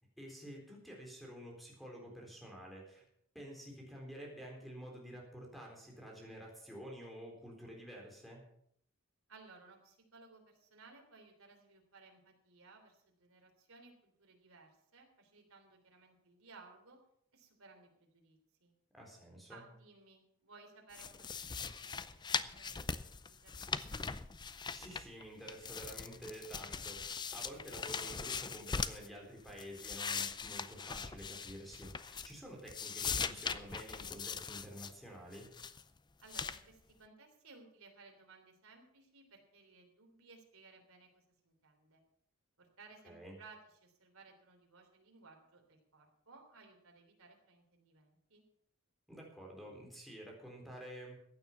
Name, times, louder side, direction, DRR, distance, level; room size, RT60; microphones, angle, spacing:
voice 1, 0.2-3.0 3.3-8.4 18.9-19.6 24.7-35.5 43.0-43.4 49.1-51.2, equal, ahead, -1 dB, 3.8 m, -50 dB
voice 2, 9.3-17.0 17.3-18.7 19.5-24.2 36.2-42.0 42.6-48.4, right 4 dB, 70° right, 2 dB, 3.4 m, -60 dB
sound 1, 20.9-25.2 25.5-29.1 29.5-32.4 32.7-34.9 35.3-35.8 36.3-36.6, left 5 dB, 20° left, 0.5 m, -40 dB
15.5 x 9.6 x 5.8 m, 0.70 s
head